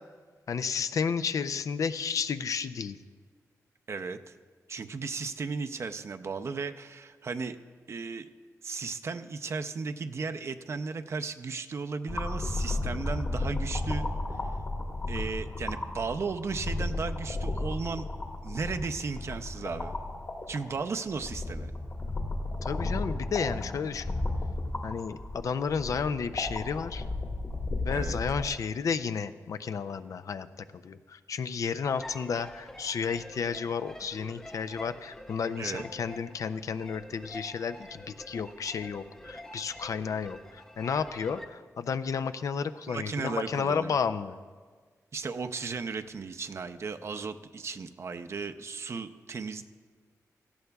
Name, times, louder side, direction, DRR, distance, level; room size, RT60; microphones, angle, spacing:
voice 1, 0.5-3.0 22.6-24.2 24.8-27.0 27.8-30.5 30.7-44.3, left 6 dB, 65° left, 12 dB, 0.4 m, -32 dB
voice 2, 3.9-4.3 4.7-7.6 7.9-8.3 8.6-14.0 15.1-18.1 18.4-19.9 20.5-21.7 27.9-28.2 35.6-35.9 42.9-44.0 45.1-49.6, right 4 dB, 50° right, 9 dB, 0.5 m, -35 dB
sound 1, 12.1-28.5, left 2 dB, 35° left, 1.3 m, -34 dB
sound 2, 31.8-41.5, left 1 dB, 10° left, 0.6 m, -47 dB
17.5 x 14.5 x 2.3 m, 1.5 s
wide cardioid pair, 135°, 6 cm